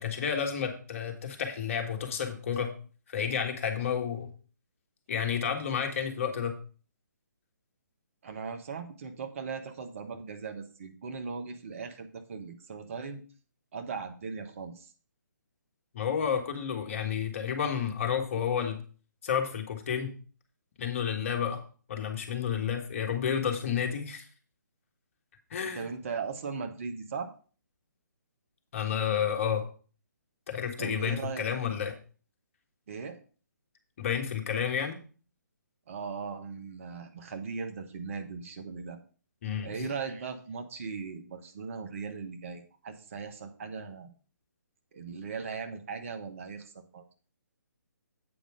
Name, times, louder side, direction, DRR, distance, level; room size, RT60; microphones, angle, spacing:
voice 1, 0.0-2.7 3.1-4.3 5.1-6.6 15.9-18.8 19.2-20.1 20.8-21.6 21.9-24.3 25.5-25.9 28.7-29.6 30.5-32.0 34.0-35.0 39.4-39.9, left 7 dB, 45° left, 5 dB, 1.5 m, -31 dB
voice 2, 8.2-13.2 13.7-14.9 25.7-27.3 30.8-31.5 32.9-33.2 35.9-39.0 39.6-44.1 44.9-47.0, right 5 dB, 45° right, 6 dB, 1.1 m, -38 dB
8.4 x 5.2 x 5.0 m, 0.39 s
figure-of-eight pair, 135°, 10 cm